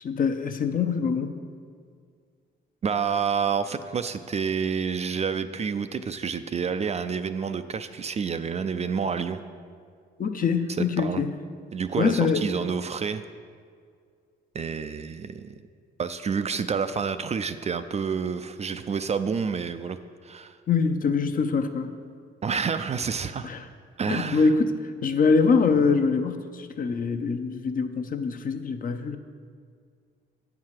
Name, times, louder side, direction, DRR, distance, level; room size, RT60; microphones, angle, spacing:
voice 1, 0.0-1.3 10.2-11.3 12.0-12.4 20.7-21.9 23.4-23.6 24.1-24.7 25.0-29.2, left 5 dB, 45° left, 8 dB, 0.7 m, -24 dB
voice 2, 2.8-9.4 10.8-11.2 11.7-13.2 14.5-15.6 16.0-20.0 20.2-20.6 22.4-23.5 24.0-24.5, right 6 dB, 35° right, 10 dB, 0.4 m, -29 dB
8.6 x 4.7 x 7.4 m, 2.1 s
cardioid pair, 90°, 20 cm